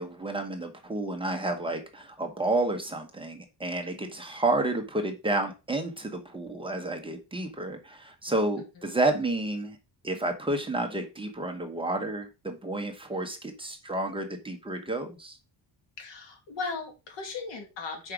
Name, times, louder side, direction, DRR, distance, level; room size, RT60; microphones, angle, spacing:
voice 1, 0.0-9.8 10.0-15.4, right 2 dB, 10° right, 1.0 m, -30 dB
voice 2, 16.0-18.1, left 4 dB, 85° left, 2.6 m, -37 dB
6.5 x 4.9 x 5.0 m
cardioid pair, 165°, 43 cm